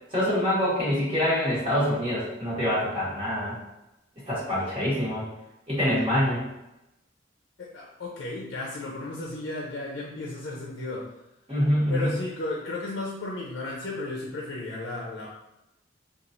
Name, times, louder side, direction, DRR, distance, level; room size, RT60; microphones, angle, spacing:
voice 1, 0.1-3.6 4.3-5.2 5.7-6.4 11.5-12.1, equal, 30° right, -8 dB, 1.3 m, -25 dB
voice 2, 7.6-11.1 11.9-15.3, left 2 dB, 60° left, -4 dB, 0.5 m, -34 dB
3.0 x 2.3 x 2.5 m, 0.92 s
head